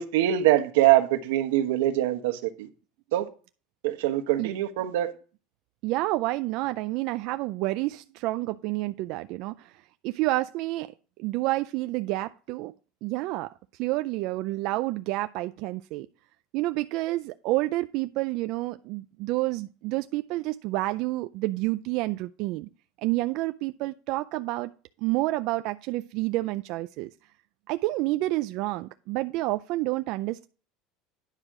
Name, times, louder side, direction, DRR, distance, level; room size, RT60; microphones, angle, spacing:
voice 1, 0.0-2.7 3.1-3.3 3.8-5.1, right 13 dB, 90° right, 1.2 m, -23 dB
voice 2, 5.8-9.7 10.0-10.9 11.2-12.7 13.0-13.5 13.8-16.1 16.5-22.7 23.0-24.7 25.0-27.1 27.7-30.5, right 19 dB, 50° right, 0.4 m, -29 dB
9.8 x 6.4 x 3.7 m
cardioid pair, 165°, 0 cm